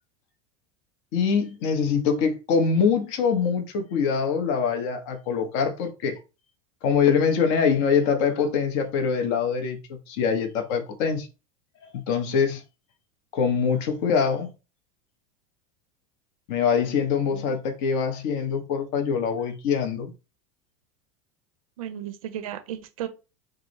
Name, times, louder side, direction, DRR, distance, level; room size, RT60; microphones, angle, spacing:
voice 1, 1.1-6.2 6.8-11.3 11.8-12.6 13.3-14.5 16.5-20.1, left 6 dB, 60° left, 0.8 m, -24 dB
voice 2, 21.8-23.1, right 11 dB, 75° right, 0.6 m, -35 dB
3.5 x 2.0 x 3.1 m
hypercardioid pair, 90°, 18 cm